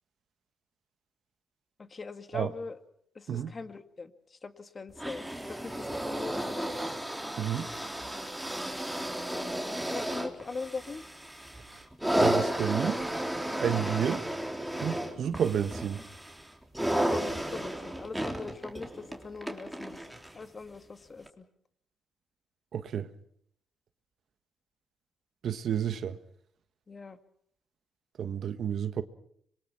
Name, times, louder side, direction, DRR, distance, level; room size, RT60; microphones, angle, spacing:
voice 1, 1.8-2.8 3.2-7.0 9.3-11.0 17.1-20.0 20.3-21.4 26.9-27.2, left 4 dB, 35° left, 2.0 m, -42 dB
sound 1, 5.0-20.4 21.3-21.4, right 1 dB, 5° right, 3.5 m, -33 dB
voice 2, 7.4-7.7 12.2-13.0 13.6-14.2 14.8-16.0 22.7-23.1 25.4-26.2 28.2-29.0, right 8 dB, 60° right, 1.5 m, -30 dB
26.0 x 23.5 x 5.9 m
cardioid pair, 90°, 0 cm